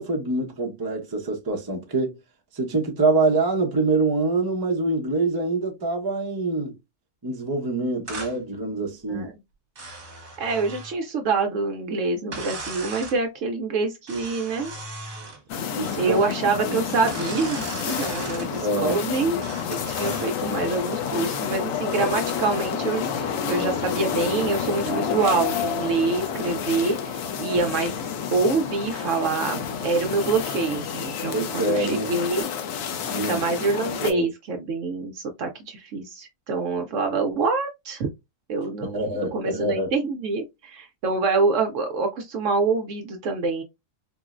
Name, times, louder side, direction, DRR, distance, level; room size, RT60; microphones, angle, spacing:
voice 1, 0.0-2.2 2.5-6.8 7.2-9.3 15.7-16.2 16.6-16.8 18.2-19.0 31.3-32.3 33.1-33.4 34.0-34.3 38.8-39.9, right 2 dB, 30° right, 0.4 m, -25 dB
sound 1, 8.1-8.4 9.8-11.0 12.3-13.2 14.1-15.4 17.1-18.5 19.4-20.3, right 3 dB, 50° right, 1.2 m, -37 dB
voice 2, 10.4-14.7 16.0-19.4 19.7-27.9 28.3-32.5 33.3-38.1 38.5-43.6, right 4 dB, 65° right, 0.8 m, -26 dB
sound 2, 15.5-34.1, left 7 dB, 70° left, 0.9 m, -29 dB
3.7 x 2.0 x 2.4 m
omnidirectional pair, 1.6 m